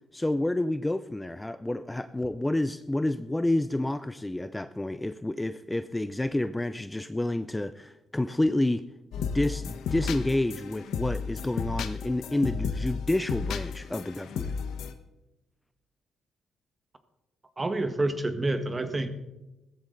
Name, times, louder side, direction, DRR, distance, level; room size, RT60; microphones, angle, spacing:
voice 1, 0.1-8.8 9.2-14.5, left 1 dB, 10° left, 12 dB, 0.4 m, -29 dB
sound 1, 9.1-14.9, left 6 dB, 80° left, 1.1 m, -33 dB
voice 2, 17.6-19.2, right 2 dB, 25° right, 8 dB, 1.5 m, -28 dB
16.0 x 14.0 x 3.9 m, 0.98 s
cardioid pair, 90°, 0 cm